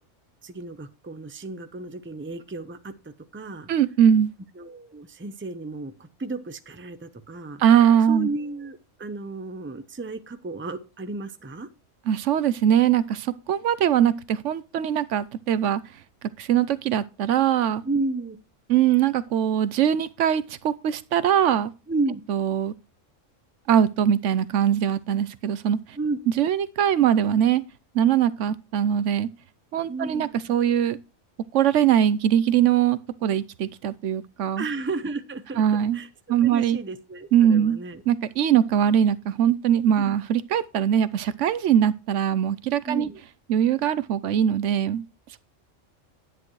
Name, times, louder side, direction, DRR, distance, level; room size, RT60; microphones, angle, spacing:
voice 1, 0.4-2.9 3.3-3.7 4.6-7.6 8.1-11.7 17.8-18.4 21.9-22.2 26.0-26.2 29.9-30.5 34.6-35.6 35.9-36.1 36.4-38.0 40.0-40.1 42.9-43.2, right 3 dB, 10° right, 0.6 m, -32 dB
voice 2, 3.7-4.3 7.6-8.3 12.1-15.8 16.4-17.8 18.7-21.7 22.3-22.7 23.7-26.0 26.4-27.6 27.9-29.3 29.7-31.0 31.5-34.6 35.6-36.0 36.3-36.8 37.3-37.8 38.1-43.1 43.5-45.0, right 9 dB, 75° right, 0.9 m, -21 dB
10.5 x 9.9 x 3.1 m
omnidirectional pair, 1.3 m